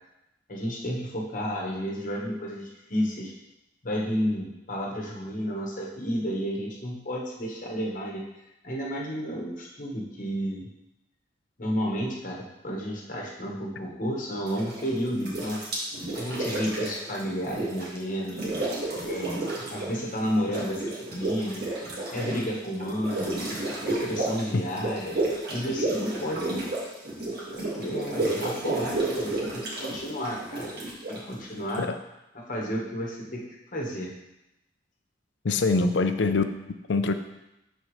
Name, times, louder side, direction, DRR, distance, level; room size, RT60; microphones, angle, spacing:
voice 1, 0.5-3.3 3.8-8.2 8.6-10.7 11.6-15.6 16.1-18.4 19.0-21.6 22.1-23.4 23.8-25.2 25.5-26.7 27.2-31.8 32.3-33.4 33.7-34.1, equal, 45° left, -2 dB, 1.2 m, -31 dB
sound 1, 14.5-14.9 15.2-18.0 18.2-20.0 20.2-31.8, right 2 dB, 60° right, 1.9 m, -31 dB
voice 2, 35.4-36.4 36.9-37.1, left 3 dB, 75° left, 8 dB, 0.5 m, -23 dB
11.5 x 4.4 x 3.2 m, 0.93 s
head